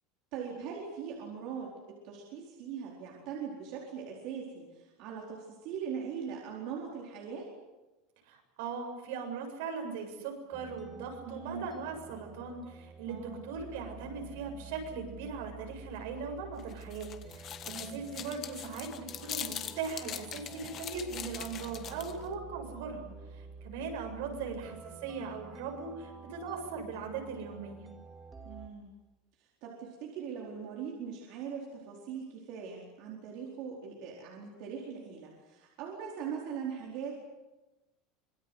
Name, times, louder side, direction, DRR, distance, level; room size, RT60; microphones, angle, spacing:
voice 1, 0.3-7.5 11.2-11.7 13.1-13.5 17.7-18.0 24.3-24.6 28.4-28.9 29.4-37.2, right 7 dB, 45° right, -2 dB, 4.5 m, -41 dB
voice 2, 8.3-23.1 23.3-27.9, right 5 dB, 70° right, 3 dB, 7.5 m, -39 dB
sound 1, 10.5-28.7, right 4 dB, 10° right, 2.3 m, -49 dB
sound 2, 16.6-22.3, left 10 dB, 30° left, 1.4 m, -42 dB
26.0 x 24.0 x 8.2 m, 1.1 s
cardioid pair, 180°, 0 cm